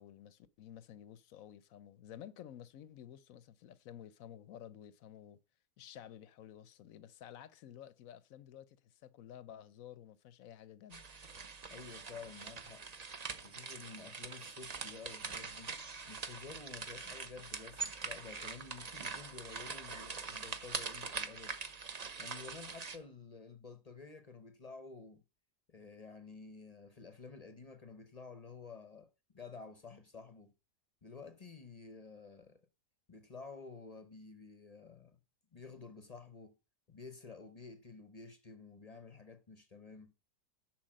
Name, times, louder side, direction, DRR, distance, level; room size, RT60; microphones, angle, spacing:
voice 1, 0.0-5.4 5.8-11.0, left 10 dB, 65° left, 0.9 m, -52 dB
sound 1, 10.9-23.0, right 4 dB, 45° right, 0.5 m, -43 dB
voice 2, 11.7-12.8 13.4-15.7 16.1-21.6 22.2-25.2 25.7-30.5 31.0-32.6 33.1-35.2 35.5-36.5 36.9-40.1, left 4 dB, 35° left, 0.6 m, -51 dB
10.5 x 4.5 x 7.5 m
omnidirectional pair, 1.9 m